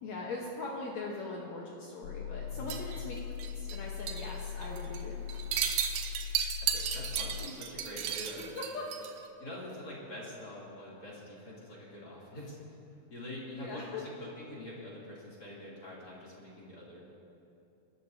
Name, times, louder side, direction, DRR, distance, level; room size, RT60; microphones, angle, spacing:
voice 1, 0.0-3.1 3.6-5.5 8.6-8.9 13.5-14.0, left 3 dB, 65° left, -2 dB, 2.2 m, -41 dB
sound 1, 2.0-7.5, left 8 dB, 80° left, 2.1 m, -40 dB
voice 2, 2.5-2.9 6.6-8.6 9.4-12.6 13.1-17.0, left 1 dB, 30° left, -6 dB, 3.2 m, -45 dB
sound 2, 2.7-3.8 4.1-4.3 4.6-5.0 5.3-9.2, right 9 dB, 85° right, 2.4 m, -34 dB
27.0 x 13.0 x 2.8 m, 2.9 s
omnidirectional pair, 3.8 m